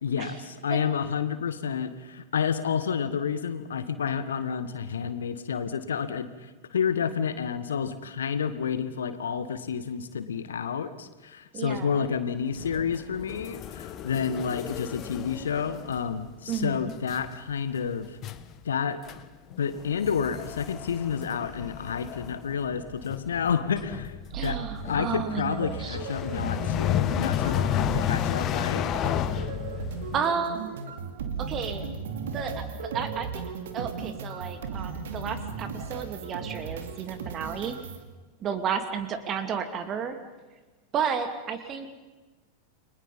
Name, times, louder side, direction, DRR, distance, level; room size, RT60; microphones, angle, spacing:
voice 1, 0.0-18.2 18.6-19.0 19.6-24.1 24.4-24.6 24.8-28.9, left 7 dB, 65° left, 12 dB, 1.6 m, -30 dB
voice 2, 11.5-12.1 16.5-16.9 24.3-26.0 30.1-30.9 31.4-31.8 32.3-33.4 33.7-37.7 38.4-40.2 40.9-41.9, right 7 dB, 30° right, 9 dB, 2.7 m, -32 dB
sound 1, 12.5-16.1 16.5-16.8 17.1-17.4 17.8-17.9 18.2-18.5 19.1-19.2 19.5-30.2, left 11 dB, 35° left, 1.4 m, -32 dB
sound 2, 24.3-38.0, right 6 dB, 60° right, 2.7 m, -36 dB
30.0 x 22.5 x 5.5 m, 1.2 s
figure-of-eight pair, 90°, 0 cm